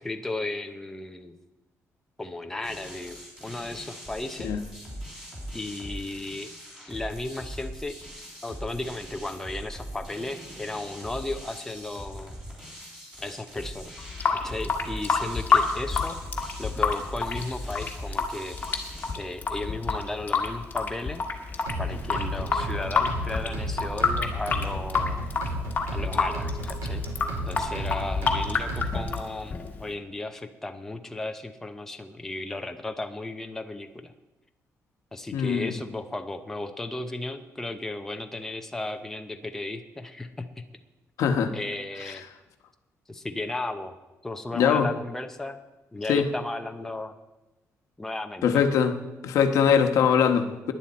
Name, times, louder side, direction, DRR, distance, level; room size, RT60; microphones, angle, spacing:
voice 1, 0.0-1.4 2.2-4.5 5.5-6.5 6.9-8.0 8.4-12.4 13.2-13.9 14.3-16.2 16.6-18.8 19.2-21.2 21.8-25.3 25.9-27.1 27.5-34.1 35.1-40.6 41.5-42.2 43.1-44.0 44.2-45.6 45.9-47.1 48.0-48.6, left 2 dB, 10° left, 5 dB, 0.6 m, -35 dB
sound 1, 2.6-19.1, equal, 10° right, 3.8 m, -41 dB
Water tap faucet / Sink (filling or washing) / Drip, 14.0-29.9, left 5 dB, 30° left, 1.5 m, -28 dB
sound 2, 21.7-29.2, equal, 90° right, 4.5 m, -33 dB
voice 2, 35.3-35.7 41.2-41.5 44.5-44.9 46.1-46.3 48.4-48.9 49.2-50.7, left 7 dB, 85° left, 7 dB, 1.1 m, -22 dB
18.0 x 10.5 x 4.2 m, 1.1 s
cardioid pair, 175°, 5 cm